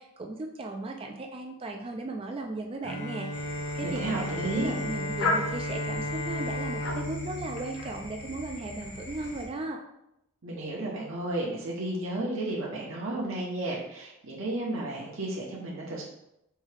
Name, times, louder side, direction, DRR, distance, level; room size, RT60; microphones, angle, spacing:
voice 1, 0.0-3.3 3.7-9.8, right 2 dB, 25° right, 3 dB, 0.3 m, -36 dB
Bowed string instrument, 2.8-8.7, left 1 dB, 60° left, 1.1 m, -35 dB
sound 1, 3.3-9.5, left 2 dB, 80° left, 0.9 m, -36 dB
voice 2, 3.8-4.7 10.4-16.0, right 2 dB, 60° right, -3 dB, 0.8 m, -33 dB
4.6 x 2.7 x 3.3 m, 0.83 s
head